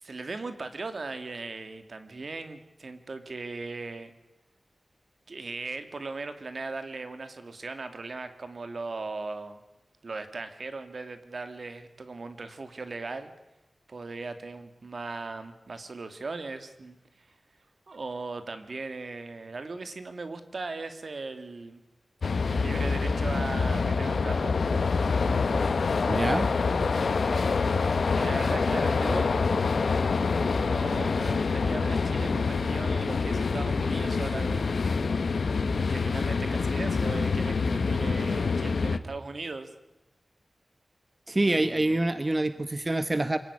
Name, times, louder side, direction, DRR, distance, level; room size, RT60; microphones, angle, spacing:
voice 1, 0.0-4.1 5.3-9.6 10.0-13.3 13.9-17.3 17.9-21.8 22.4-24.5 27.1-27.5 28.1-29.3 30.6-34.7 35.7-39.7 41.4-41.9, right 3 dB, 65° right, 9 dB, 2.4 m, -38 dB
sound 1, 22.2-39.0, left 4 dB, 85° left, 1.2 m, -26 dB
voice 2, 26.1-26.5 41.3-43.4, right 2 dB, 30° right, 11 dB, 1.1 m, -26 dB
26.0 x 17.0 x 9.9 m, 0.95 s
wide cardioid pair, 75°, 0 cm